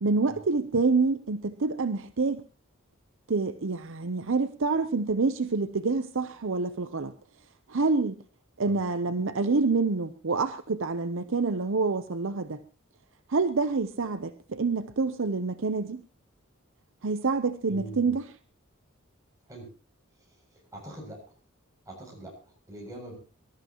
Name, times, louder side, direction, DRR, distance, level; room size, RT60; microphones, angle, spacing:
voice 1, 0.0-2.4 3.3-7.1 7.7-8.2 8.6-12.6 13.3-16.0 17.0-18.2, right 4 dB, 65° right, 10 dB, 0.7 m, -27 dB
voice 2, 17.7-18.2 19.5-19.7 20.5-21.2 21.9-23.2, right 1 dB, 15° right, -1 dB, 7.2 m, -43 dB
24.0 x 13.5 x 3.0 m, 0.35 s
head